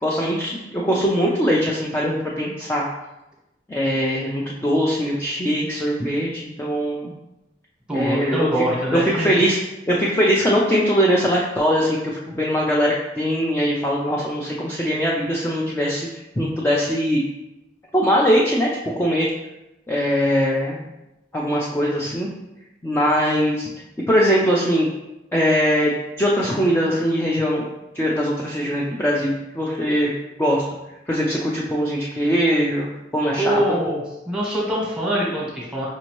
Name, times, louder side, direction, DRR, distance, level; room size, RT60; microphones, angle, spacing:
voice 1, 0.0-2.8 3.7-7.1 7.9-8.5 8.9-9.6 9.9-16.1 16.4-17.2 17.9-18.7 19.0-19.3 19.9-20.9 21.3-22.3 22.8-23.7 24.1-24.9 25.3-25.9 26.2-27.7 27.9-30.1 30.4-30.6 31.1-32.9 33.1-33.6, equal, 10° left, -4 dB, 0.4 m, -21 dB
voice 2, 7.9-9.4 33.4-35.9, right 1 dB, 5° right, -5 dB, 1.0 m, -24 dB
5.1 x 2.7 x 3.0 m, 0.94 s
head